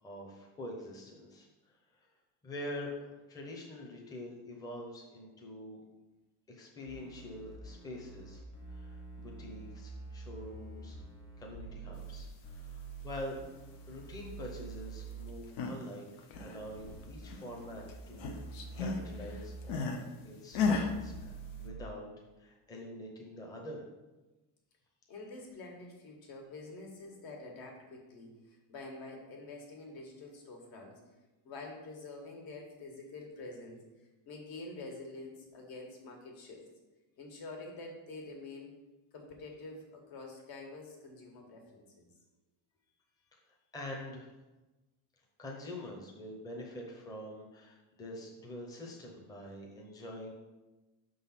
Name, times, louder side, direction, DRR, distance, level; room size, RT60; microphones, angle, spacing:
voice 1, 0.0-1.5 1.9-2.1 2.4-5.8 6.5-8.4 8.7-11.0 11.4-13.4 13.9-18.3 18.8-21.3 21.6-22.1 22.4-23.9 43.7-44.3 45.4-50.3, left 1 dB, 10° left, -2 dB, 0.7 m, -45 dB
sound 1, 6.9-15.3 16.3-19.7 20.5-21.8, right 4 dB, 35° left, 1.4 m, -47 dB
sound 2, 15.3-15.9 16.2-17.6 17.9-20.1 20.5-20.9, left 4 dB, 80° left, 0.9 m, -34 dB
voice 2, 25.1-31.0 31.4-33.8 34.2-36.7 37.2-38.7 39.1-42.1, left 2 dB, 60° left, 1 dB, 1.6 m, -47 dB
6.1 x 3.8 x 5.8 m, 1.1 s
cardioid pair, 180°, 40 cm